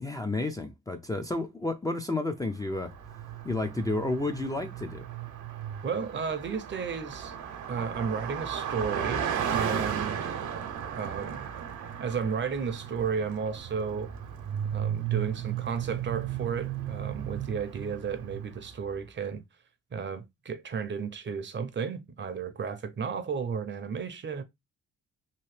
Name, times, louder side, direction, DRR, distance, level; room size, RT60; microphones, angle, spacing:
voice 1, 0.0-2.9 3.4-5.1, left 2 dB, 10° left, 0.4 m, -31 dB
Car passing by, 2.7-18.7, right 9 dB, 80° right, 0.8 m, -35 dB
voice 2, 5.8-7.3 7.7-9.3 9.5-10.3 10.9-11.5 12.0-14.1 14.7-19.4 19.9-24.4, right 6 dB, 40° right, 0.6 m, -33 dB
2.9 x 2.7 x 3.1 m
cardioid pair, 90°, 30 cm